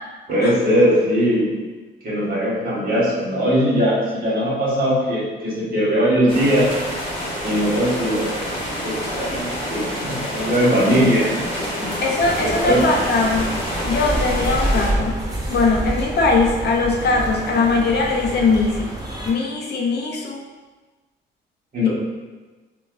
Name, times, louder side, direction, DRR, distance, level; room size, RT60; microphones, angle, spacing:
voice 1, 0.3-1.5 2.0-6.7 7.4-8.5 8.8-11.3 11.6-11.9 12.4-12.8 21.7-21.9, equal, 45° right, -7 dB, 1.4 m, -20 dB
sound 1, 6.3-14.9, equal, 25° left, 1.1 m, -28 dB
voice 2, 12.0-13.5 13.8-15.2 15.5-18.9 19.3-20.4 21.8-21.9, left 3 dB, 55° left, -1 dB, 0.6 m, -20 dB
sound 2, 12.2-19.3, right 1 dB, 20° right, 0.8 m, -27 dB
3.9 x 2.2 x 2.5 m, 1.3 s
cardioid pair, 90°, 20 cm